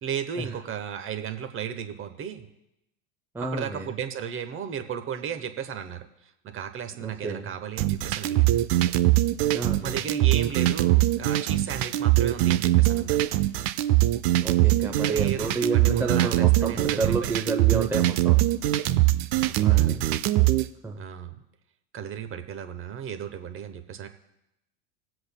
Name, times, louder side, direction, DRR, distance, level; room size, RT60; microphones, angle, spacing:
voice 1, 0.0-2.5 3.4-8.7 9.8-13.2 15.0-18.0 19.4-19.9 21.0-21.3 21.9-24.1, right 8 dB, 30° right, 8 dB, 0.9 m, -35 dB
voice 2, 3.3-3.9 7.0-7.5 9.5-10.0 14.4-18.4 19.6-20.0 20.8-21.0, right 3 dB, 5° right, 1 dB, 0.7 m, -30 dB
sound 1, 7.8-20.7, right 15 dB, 50° right, 0.6 m, -22 dB
21.0 x 7.7 x 2.2 m, 0.85 s
hypercardioid pair, 90°, 39 cm